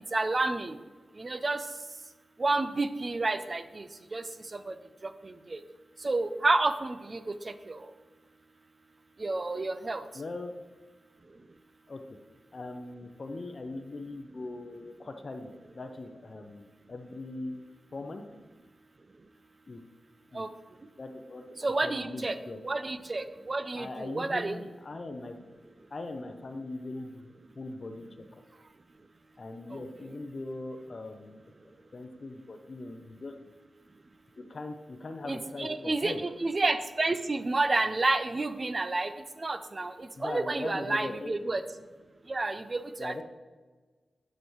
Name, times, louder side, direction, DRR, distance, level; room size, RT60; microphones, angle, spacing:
voice 1, 0.1-0.8 1.2-1.6 2.4-3.9 4.1-4.2 4.7-4.8 5.2-5.6 6.0-7.2 7.4-7.8 9.2-10.0 20.3-20.5 21.6-22.4 22.6-24.6 29.7-29.8 35.3-39.1 39.4-39.9 40.2-41.6 42.3-43.2, right 2 dB, 45° right, 11 dB, 0.5 m, -30 dB
voice 2, 10.1-10.5 11.9-12.0 12.5-17.6 17.9-18.2 19.7-19.8 20.3-20.4 21.0-21.5 21.8-22.6 23.8-25.4 25.9-28.0 28.3-28.4 29.4-31.4 31.9-33.3 34.4-36.2 40.2-41.3 43.0-43.2, left 2 dB, 55° left, 6 dB, 0.5 m, -40 dB
7.6 x 5.0 x 3.1 m, 1.3 s
cardioid pair, 40°, 0 cm